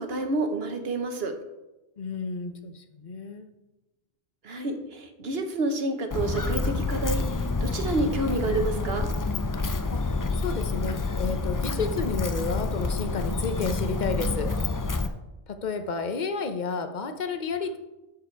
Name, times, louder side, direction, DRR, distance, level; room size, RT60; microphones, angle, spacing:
voice 1, 0.0-1.3 4.4-9.1, right 2 dB, 70° right, 6 dB, 1.3 m, -29 dB
voice 2, 2.0-3.5 9.9-10.0 10.4-14.6 15.5-17.8, left 4 dB, 50° left, 8 dB, 0.9 m, -31 dB
Walk footsteps, 6.1-15.1, left 3 dB, 30° left, 0.3 m, -28 dB
13.5 x 4.8 x 4.6 m, 1.0 s
omnidirectional pair, 1.1 m